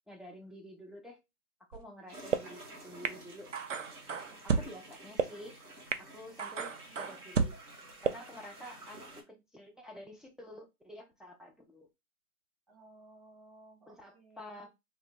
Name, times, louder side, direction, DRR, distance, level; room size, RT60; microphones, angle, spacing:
voice 1, 0.1-1.2 1.7-3.5 4.1-5.6 6.0-7.5 8.0-9.0 9.3-11.9 13.9-14.7, equal, ahead, 0.3 m, -49 dB
sound 1, 1.7-1.8 2.3-2.4 3.0-3.1 3.5-4.7 5.2-5.3 5.9-6.0 6.4-7.5 8.0-8.1, right 5 dB, 60° right, 0.5 m, -31 dB
sound 2, 2.1-9.2, right 1 dB, 90° right, 1.4 m, -51 dB
voice 2, 12.7-14.7, right 2 dB, 25° right, 1.0 m, -58 dB
2.8 x 2.7 x 3.3 m
hypercardioid pair, 165°, 44 cm